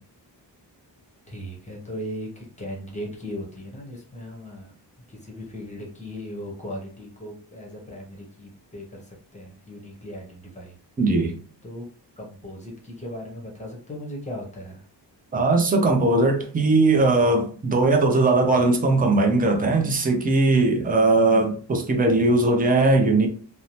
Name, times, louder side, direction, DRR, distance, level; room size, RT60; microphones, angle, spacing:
voice 1, 1.3-4.7 5.1-10.8 11.6-11.8 12.2-14.8, equal, 15° left, 0.7 m, -37 dB
voice 2, 11.0-11.4 15.3-23.3, right 2 dB, 20° right, 0.4 m, -19 dB
2.6 x 2.0 x 2.9 m
wide cardioid pair, 165°, 43 cm